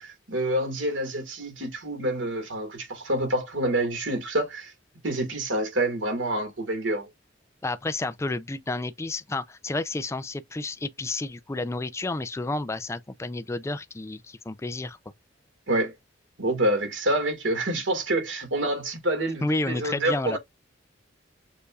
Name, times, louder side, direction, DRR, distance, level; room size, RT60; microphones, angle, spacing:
voice 1, 0.0-4.7 5.0-7.1 15.7-15.9 16.4-20.4, right 1 dB, 90° right, 1.9 m, -27 dB
voice 2, 7.6-15.0 19.4-20.4, left 2 dB, 15° left, 0.3 m, -31 dB
6.6 x 2.6 x 2.3 m
head